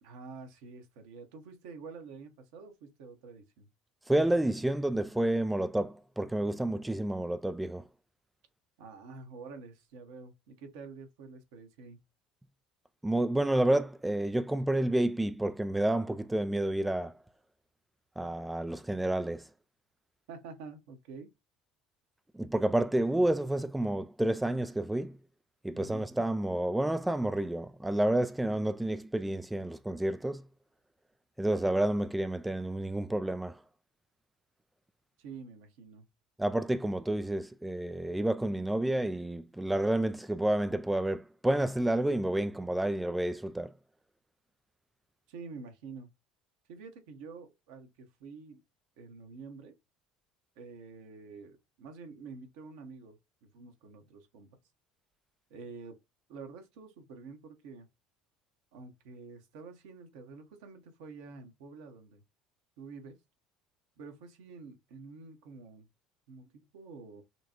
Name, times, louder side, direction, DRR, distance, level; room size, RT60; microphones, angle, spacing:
voice 1, 0.0-3.7 8.8-12.0 20.3-21.3 25.7-26.1 35.2-36.0 45.3-46.1 46.7-48.6 49.0-49.8 50.6-54.5 55.5-56.0 56.3-57.9 58.7-62.2 62.8-63.2 64.0-65.9 66.3-67.2, right 4 dB, 65° right, 1.1 m, -48 dB
voice 2, 4.1-7.9 13.0-17.1 18.2-19.5 22.3-25.2 25.6-30.4 31.4-33.6 36.4-43.7, right 1 dB, 10° right, 0.3 m, -30 dB
5.7 x 2.3 x 2.9 m
figure-of-eight pair, 60°, 0 cm